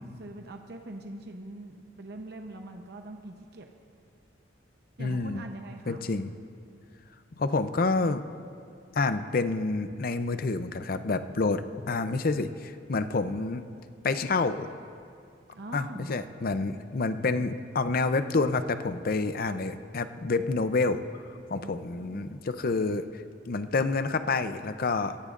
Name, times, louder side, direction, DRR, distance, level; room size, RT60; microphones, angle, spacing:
voice 1, 0.0-3.7 5.0-6.1 15.5-16.1 21.6-22.3, right 1 dB, 60° right, 3 dB, 0.8 m, -43 dB
voice 2, 5.0-5.4 5.9-6.3 7.4-8.2 8.9-13.7 14.0-14.7 15.7-21.2 21.5-25.2, left 3 dB, 50° left, 10 dB, 0.6 m, -28 dB
23.0 x 16.0 x 2.5 m, 2.4 s
head